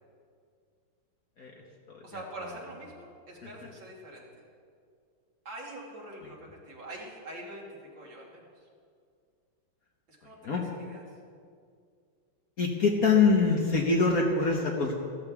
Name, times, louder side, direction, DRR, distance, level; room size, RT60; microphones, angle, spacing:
voice 1, 2.0-4.4 5.4-8.7 10.1-11.0, right 1 dB, 60° right, -3 dB, 2.9 m, -44 dB
voice 2, 12.6-14.9, left 4 dB, 50° left, -1 dB, 1.4 m, -24 dB
15.5 x 13.5 x 3.6 m, 2.2 s
omnidirectional pair, 2.4 m